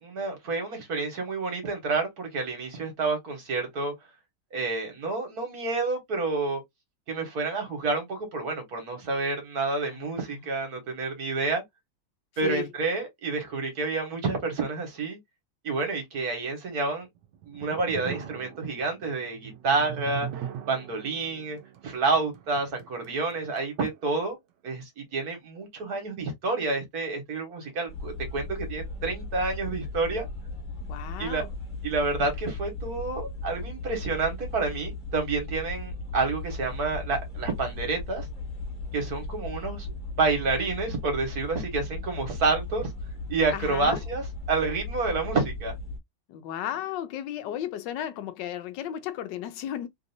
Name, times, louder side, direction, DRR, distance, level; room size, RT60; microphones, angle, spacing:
voice 1, 0.0-3.9 4.5-6.6 7.1-11.6 12.4-15.2 15.6-17.1 17.5-20.3 20.7-21.6 21.8-24.4 24.6-30.3 31.2-31.4 31.8-38.3 38.9-39.9 40.2-42.9 43.3-45.7, right 3 dB, 60° right, 1.7 m, -29 dB
voice 2, 9.8-10.5 12.4-12.7 30.9-31.5 43.5-44.0 46.3-49.9, left 11 dB, 85° left, 1.2 m, -34 dB
sound 1, 17.0-24.3, right 10 dB, 85° right, 1.3 m, -41 dB
sound 2, 27.9-46.0, left 2 dB, 30° left, 1.3 m, -37 dB
3.4 x 2.6 x 2.6 m
omnidirectional pair, 1.9 m